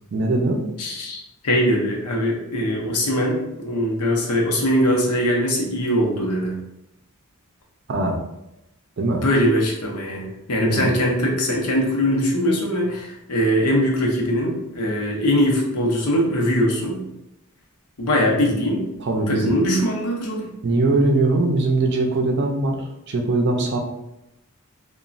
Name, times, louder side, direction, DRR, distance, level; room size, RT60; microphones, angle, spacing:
voice 1, 0.1-0.6 7.9-8.2 9.0-9.2 10.6-10.9 18.3-18.5 19.0-19.5 20.6-23.8, right 2 dB, 50° right, 2 dB, 0.4 m, -21 dB
voice 2, 0.8-6.6 9.2-17.0 18.0-18.9 19.3-20.5, equal, 85° left, 0 dB, 0.7 m, -21 dB
3.0 x 2.2 x 2.5 m, 0.87 s
head